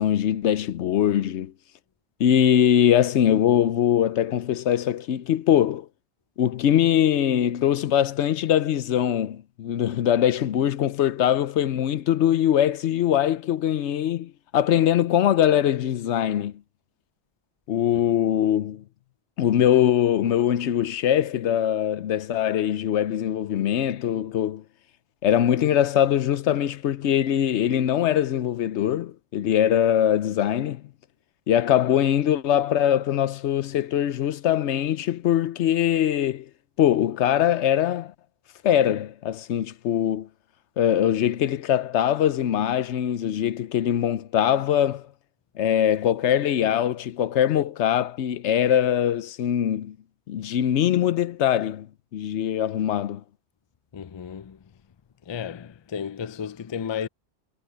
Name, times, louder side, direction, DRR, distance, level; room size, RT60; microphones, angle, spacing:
voice 1, 0.0-1.5 2.2-5.9 6.4-16.5 17.7-18.8 19.4-24.6 25.2-30.8 31.5-36.5 36.8-38.1 38.6-40.3 40.8-45.1 45.6-50.0 50.3-51.9 52.1-53.2, left 10 dB, 85° left, 1.0 m, -22 dB
voice 2, 53.9-54.6 55.3-57.1, left 7 dB, 40° left, 0.4 m, -33 dB
omnidirectional pair, 1.1 m